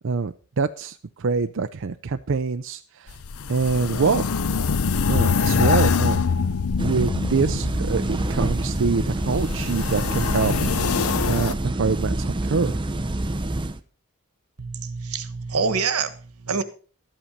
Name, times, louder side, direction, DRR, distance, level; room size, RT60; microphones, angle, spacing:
voice 1, 0.0-3.2 3.5-4.2 5.1-6.2 6.8-12.8, right 4 dB, 60° right, 9 dB, 0.5 m, -25 dB
sound 1, 3.1-11.5, left 5 dB, 80° left, 0.6 m, -24 dB
sound 2, 6.8-13.8, right 1 dB, 20° right, 0.7 m, -27 dB
voice 2, 14.6-16.6, right 5 dB, 90° right, 12 dB, 1.3 m, -26 dB
12.5 x 8.8 x 5.1 m, 0.39 s
head